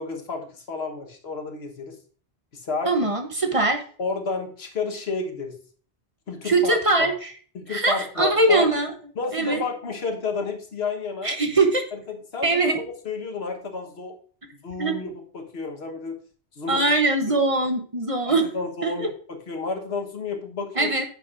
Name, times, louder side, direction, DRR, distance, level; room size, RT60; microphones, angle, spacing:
voice 1, 0.0-2.0 2.5-2.9 4.0-5.5 6.3-7.1 7.5-8.7 9.1-11.4 11.9-14.2 14.6-16.2 16.5-16.8 18.3-20.9, left 4 dB, 85° left, 4 dB, 1.5 m, -31 dB
voice 2, 2.9-3.8 6.4-7.3 7.7-8.9 9.3-9.6 11.2-11.9 12.4-12.8 14.8-14.9 16.7-18.4 18.8-19.1 20.8-21.0, right 2 dB, 35° right, 5 dB, 0.9 m, -22 dB
9.6 x 6.7 x 2.5 m, 0.44 s
omnidirectional pair, 1.0 m